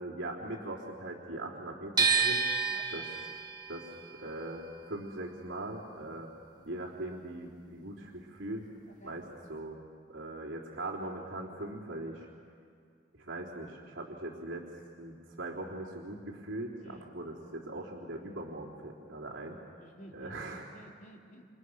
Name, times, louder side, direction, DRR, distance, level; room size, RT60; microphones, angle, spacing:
voice 1, 0.0-2.5 2.9-3.2 3.7-6.3 6.6-8.6 9.0-9.8 10.1-12.3 13.2-14.7 15.0-19.6 20.1-20.6, right 1 dB, 75° right, -8 dB, 3.8 m, -40 dB
sound 1, 2.0-8.0 8.3-9.6, right 5 dB, 20° right, 2.1 m, -32 dB
voice 2, 2.7-3.1 9.0-9.2 16.8-17.2 19.8-21.5, equal, 45° left, 0 dB, 3.5 m, -53 dB
30.0 x 28.5 x 6.5 m, 2.3 s
head